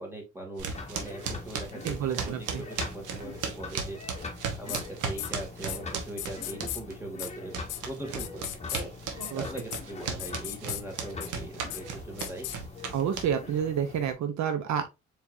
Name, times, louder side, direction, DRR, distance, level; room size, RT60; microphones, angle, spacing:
voice 1, 0.0-4.2 4.5-7.5 7.9-12.5, right 1 dB, 10° right, 2.1 m, -41 dB
sound 1, 0.6-14.1, left 3 dB, 20° left, 1.3 m, -43 dB
sound 2, 0.6-6.9 7.2-13.6, right 5 dB, 85° right, 1.1 m, -36 dB
voice 2, 1.8-2.6 9.2-9.4 12.9-14.9, right 8 dB, 65° right, 0.7 m, -29 dB
sound 3, 4.7-4.8 5.2-5.3 5.7-5.8 6.2-6.8 7.2-7.3 7.7-7.8 8.2-8.8 9.2-9.3 9.6-9.8 10.2-10.8 11.2-11.3 11.7-11.8 12.2-12.6, left 12 dB, 80° left, 0.7 m, -36 dB
4.5 x 3.6 x 2.5 m
cardioid pair, 90°, 30 cm